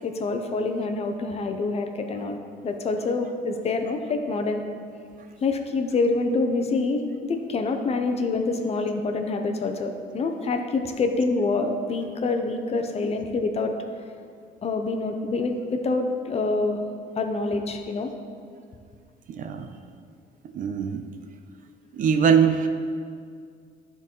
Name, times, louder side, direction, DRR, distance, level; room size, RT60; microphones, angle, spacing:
voice 1, 0.0-2.4 2.6-4.6 5.4-13.7 14.6-16.8 17.2-18.1, left 3 dB, 40° left, 5 dB, 0.7 m, -26 dB
voice 2, 19.3-19.7 20.5-21.0 22.0-22.7, right 7 dB, 50° right, 7 dB, 0.6 m, -21 dB
11.5 x 3.9 x 4.5 m, 2.2 s
cardioid pair, 110°, 17 cm